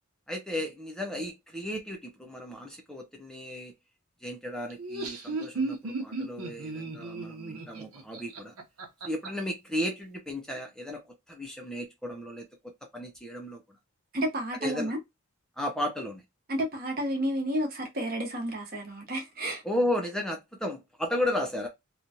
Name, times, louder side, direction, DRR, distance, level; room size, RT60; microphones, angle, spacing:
voice 1, 0.3-3.7 4.2-8.6 9.0-13.6 14.6-14.9 15.6-16.2 19.6-21.7, left 1 dB, 5° left, 0.5 m, -34 dB
Laughter, 4.7-9.3, right 3 dB, 85° right, 0.9 m, -35 dB
voice 2, 14.1-15.0 16.5-19.6, right 1 dB, 40° right, 1.0 m, -31 dB
3.0 x 2.3 x 2.7 m
head